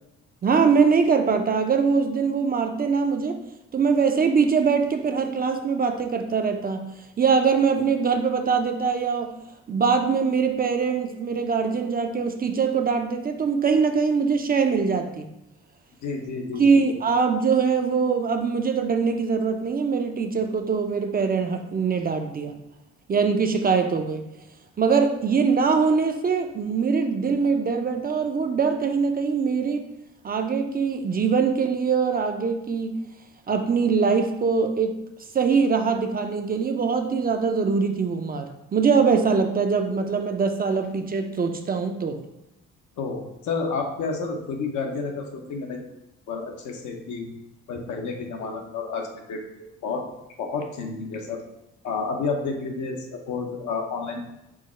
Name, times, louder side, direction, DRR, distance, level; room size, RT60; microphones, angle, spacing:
voice 1, 0.4-3.4 3.7-6.8 7.2-9.3 9.7-15.2 16.6-22.5 23.1-24.2 24.8-29.8 30.2-32.9 33.5-34.9 35.3-42.2, right 5 dB, 30° right, 5 dB, 0.4 m, -22 dB
voice 2, 16.0-16.9 43.0-45.8 46.3-47.3 47.7-50.0 50.4-51.4 51.8-54.3, left 4 dB, 75° left, 2 dB, 0.8 m, -30 dB
4.7 x 2.0 x 4.3 m, 0.87 s
cardioid pair, 90°, 30 cm